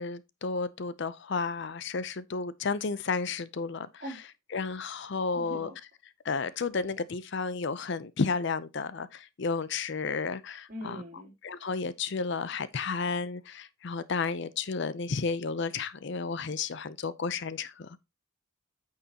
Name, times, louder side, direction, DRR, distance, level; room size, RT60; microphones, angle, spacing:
voice 1, 0.0-4.2 4.5-5.7 6.2-11.0 11.4-18.0, left 4 dB, 55° left, 0.5 m, -32 dB
voice 2, 5.3-5.7 10.7-11.3, equal, 40° right, 3.1 m, -41 dB
9.2 x 6.5 x 2.8 m
head